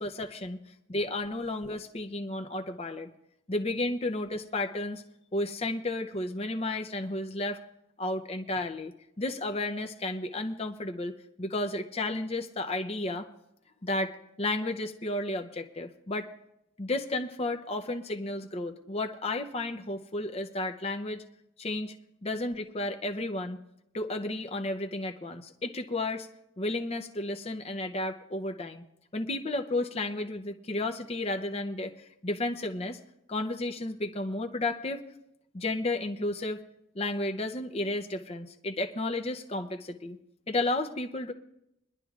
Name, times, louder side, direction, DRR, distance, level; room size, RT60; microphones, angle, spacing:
voice 1, 0.0-0.6 0.9-3.1 3.5-5.0 5.3-7.6 8.0-11.1 11.4-13.3 13.8-14.1 14.4-16.3 16.8-21.2 21.6-22.0 22.2-23.6 23.9-26.3 26.6-28.8 29.1-33.0 33.3-35.1 35.5-36.6 36.9-40.2 40.5-41.3, left 2 dB, 30° left, 5 dB, 0.6 m, -32 dB
23.5 x 11.5 x 2.4 m, 0.83 s
head